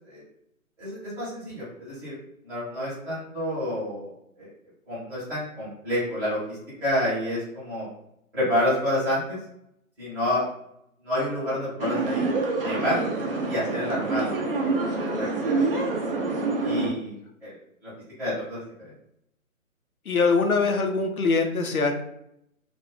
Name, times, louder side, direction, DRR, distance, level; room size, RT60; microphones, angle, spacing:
voice 1, 0.8-2.1 2.4-4.5 4.9-7.9 8.3-9.4 10.0-10.4 11.0-12.3 12.6-13.1 13.4-14.6 14.9-15.8 16.6-17.5 17.8-17.9 18.2-18.9, left 1 dB, 5° right, -13 dB, 0.8 m, -29 dB
sound 1, 11.8-16.9, right 3 dB, 45° right, 0.5 m, -26 dB
voice 2, 20.1-22.0, left 4 dB, 85° left, 4 dB, 0.7 m, -23 dB
2.4 x 2.1 x 3.5 m, 0.77 s
figure-of-eight pair, 140°, 42 cm